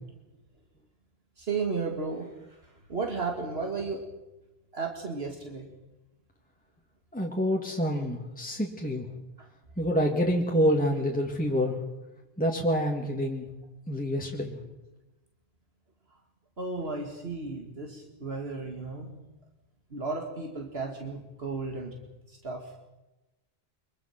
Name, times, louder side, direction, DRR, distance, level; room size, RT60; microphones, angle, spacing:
voice 1, 1.4-2.3 2.6-4.0 4.7-5.7 9.4-9.5 14.6-14.7 16.6-19.2 19.9-22.0 22.3-22.7, right 4 dB, 75° right, 2 dB, 2.3 m, -34 dB
voice 2, 7.1-9.1 9.8-11.7 12.4-13.4 13.9-14.6, equal, 10° left, 0 dB, 2.0 m, -27 dB
24.0 x 22.5 x 5.9 m, 1.0 s
omnidirectional pair, 1.0 m